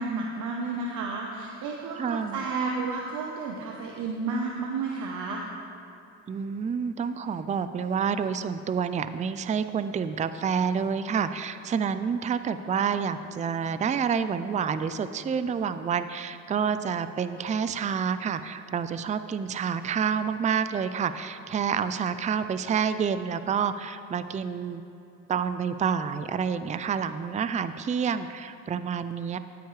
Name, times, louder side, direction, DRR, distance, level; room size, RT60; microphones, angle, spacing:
voice 1, 0.0-5.4, right 4 dB, 80° right, 0 dB, 0.9 m, -31 dB
voice 2, 2.0-2.4 6.3-24.8 25.3-29.4, right 7 dB, 25° right, 12 dB, 0.4 m, -28 dB
13.0 x 9.5 x 3.2 m, 2.6 s
cardioid pair, 90°, 30 cm